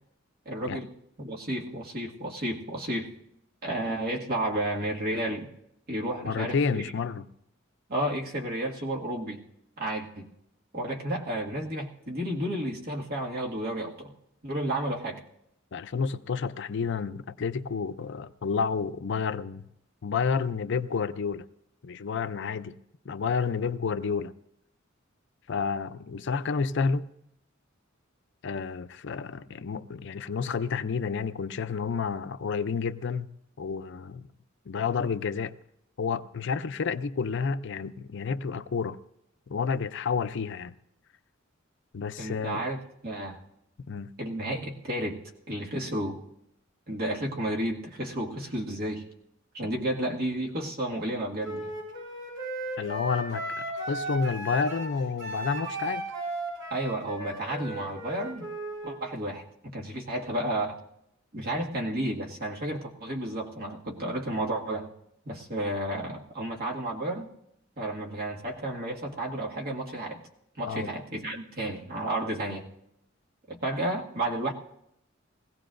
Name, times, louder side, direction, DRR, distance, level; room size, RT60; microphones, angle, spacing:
voice 1, 0.5-0.9 1.2-3.1 3.6-5.5 5.9-6.8 7.9-9.4 9.8-10.3 10.7-14.1 14.4-15.2 42.2-43.4 44.2-46.2 46.9-49.1 49.5-51.7 56.7-58.5 58.8-60.8 61.3-64.9 65.3-67.3 67.8-70.2 70.6-72.7 73.5-74.5, right 1 dB, 50° right, 1.9 m, -32 dB
voice 2, 6.2-7.3 15.7-19.7 20.0-21.5 21.8-22.8 23.1-24.3 25.5-27.1 28.4-33.3 33.6-34.3 34.7-35.5 36.0-39.0 39.5-40.7 41.9-42.6 43.9-44.1 52.8-56.0 70.7-70.9, left 5 dB, 65° left, 0.5 m, -30 dB
Wind instrument woodwind instrument, 51.4-58.9, right 1 dB, 65° right, 6.8 m, -36 dB
21.0 x 16.5 x 2.6 m
head